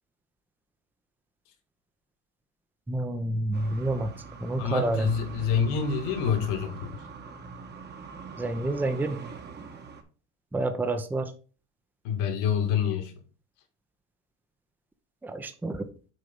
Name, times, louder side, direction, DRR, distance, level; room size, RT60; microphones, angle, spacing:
voice 1, 2.9-4.1 4.4-5.1 8.4-9.2 10.5-11.3 15.2-15.8, right 2 dB, 5° right, 0.6 m, -28 dB
sound 1, 3.5-10.0, right 5 dB, 30° right, 1.2 m, -43 dB
voice 2, 4.6-7.0 12.0-13.1, left 7 dB, 65° left, 1.8 m, -27 dB
6.6 x 3.8 x 5.2 m
supercardioid pair, 110°, 35 cm